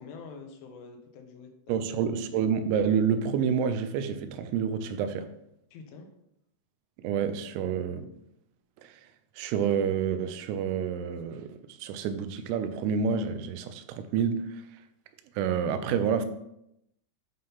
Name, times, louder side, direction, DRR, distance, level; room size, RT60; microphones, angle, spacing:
voice 1, 0.0-1.8 5.7-6.1, left 4 dB, 80° left, 3.4 m, -46 dB
voice 2, 1.7-5.3 7.0-8.1 8.8-9.0 9.4-14.6 15.4-16.3, right 7 dB, 85° right, 3.4 m, -28 dB
10.0 x 3.8 x 5.6 m
omnidirectional pair, 5.8 m